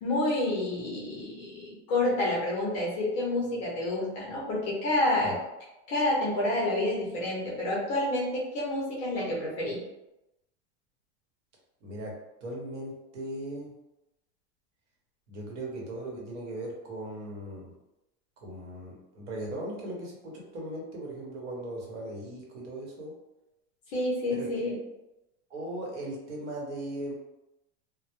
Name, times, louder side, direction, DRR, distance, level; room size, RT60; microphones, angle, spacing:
voice 1, 0.0-5.3 5.9-9.8 23.9-24.8, left 1 dB, 30° left, -5 dB, 0.5 m, -29 dB
voice 2, 11.8-12.1 12.4-13.7 15.3-17.7 18.4-23.1 24.3-24.7 25.5-27.1, right 1 dB, 75° right, -2 dB, 0.9 m, -38 dB
2.1 x 2.0 x 2.9 m, 0.94 s
supercardioid pair, 175°, 36 cm